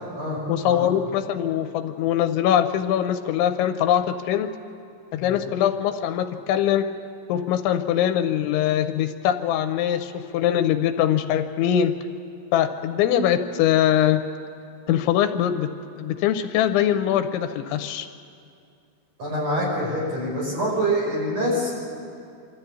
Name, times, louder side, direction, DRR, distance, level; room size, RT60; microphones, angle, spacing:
voice 1, 0.5-4.5 5.1-6.9 7.3-11.9 12.5-14.2 14.9-15.7 16.0-18.1, left 10 dB, 85° left, 9 dB, 3.1 m, -22 dB
voice 2, 19.2-21.7, equal, 35° right, -4 dB, 5.9 m, -25 dB
25.5 x 13.5 x 8.3 m, 2.4 s
omnidirectional pair, 5.4 m